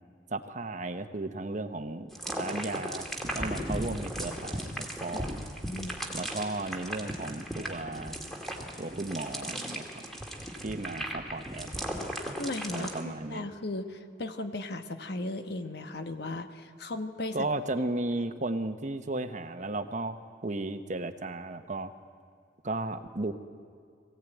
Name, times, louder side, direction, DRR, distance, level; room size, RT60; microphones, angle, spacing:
voice 1, 0.3-2.1 2.4-5.4 6.1-8.2 8.8-9.8 10.6-11.7 12.7-13.5 17.3-20.2 20.4-21.9 22.6-23.3, right 2 dB, 40° right, 9 dB, 1.0 m, -34 dB
sound 1, 2.1-13.0, equal, ahead, 2.3 m, -37 dB
voice 2, 5.6-6.0 12.4-17.5, left 2 dB, 60° left, 8 dB, 1.3 m, -36 dB
21.5 x 16.5 x 9.2 m, 2.3 s
head